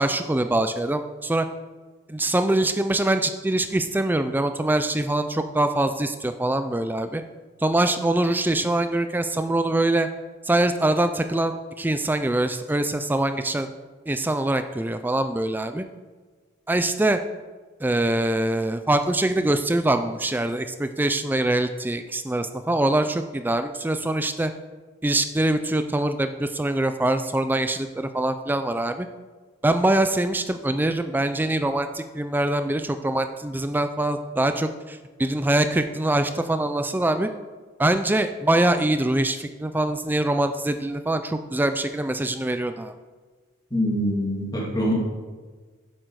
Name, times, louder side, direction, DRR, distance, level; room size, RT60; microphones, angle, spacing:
voice 1, 0.0-1.5 2.1-7.2 7.6-10.1 10.4-13.7 14.1-15.9 16.7-17.2 17.8-24.5 25.0-29.1 29.6-37.3 37.8-42.9, right 1 dB, 10° right, 9 dB, 0.3 m, -23 dB
voice 2, 43.7-44.9, equal, 20° left, -3 dB, 2.3 m, -24 dB
10.0 x 7.5 x 4.7 m, 1.4 s
head